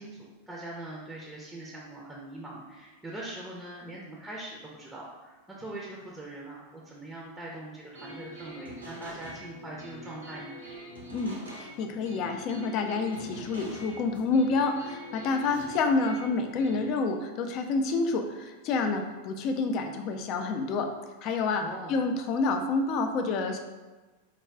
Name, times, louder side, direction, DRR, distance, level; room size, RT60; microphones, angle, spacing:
voice 1, 0.0-10.6 21.6-22.0, right 1 dB, 5° right, -4 dB, 0.6 m, -42 dB
sound 1, 7.9-16.9, equal, 80° right, 0.9 m, -44 dB
voice 2, 11.1-20.9 21.2-21.6 21.9-23.6, left 4 dB, 40° left, 6 dB, 0.4 m, -28 dB
4.8 x 2.3 x 3.4 m, 1.2 s
figure-of-eight pair, 90°, 0 cm